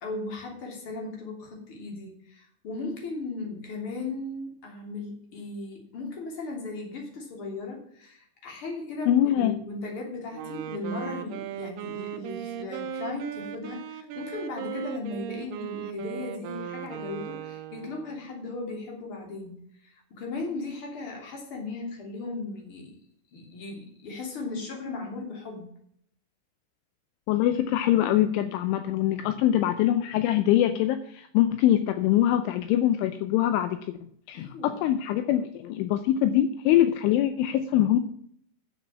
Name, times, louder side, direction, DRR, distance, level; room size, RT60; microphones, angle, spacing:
voice 1, 0.0-22.9 23.3-25.7 34.3-34.8, left 3 dB, 30° left, 0 dB, 3.1 m, -37 dB
voice 2, 9.1-9.6 27.3-34.0 34.3-38.0, left 12 dB, 80° left, 9 dB, 3.0 m, -23 dB
Wind instrument woodwind instrument, 10.3-18.2, right 9 dB, 85° right, 2.3 m, -37 dB
9.6 x 7.2 x 7.0 m, 0.67 s
omnidirectional pair, 5.8 m